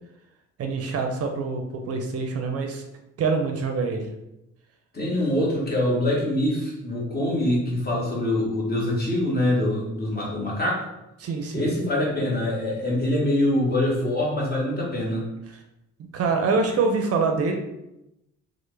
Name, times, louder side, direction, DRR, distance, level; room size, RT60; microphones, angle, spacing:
voice 1, 0.6-2.8 3.2-4.1 11.2-11.7 16.0-17.6, right 4 dB, 50° right, 4 dB, 0.5 m, -25 dB
voice 2, 4.9-10.8 11.5-15.2, left 1 dB, 30° left, -3 dB, 1.1 m, -24 dB
3.1 x 2.1 x 3.2 m, 0.89 s
cardioid pair, 90°, 30 cm